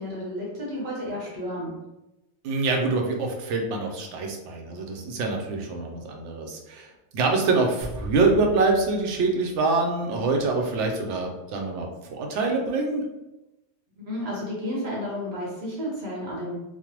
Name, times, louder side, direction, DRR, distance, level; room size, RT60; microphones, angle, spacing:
voice 1, 0.0-1.7 14.0-16.5, equal, 65° right, -5 dB, 1.3 m, -32 dB
voice 2, 2.4-13.0, right 3 dB, 85° right, 2 dB, 0.9 m, -25 dB
sound 1, 7.8-10.3, equal, 30° right, 0.4 m, -40 dB
3.2 x 2.1 x 2.9 m, 0.99 s
omnidirectional pair, 1.2 m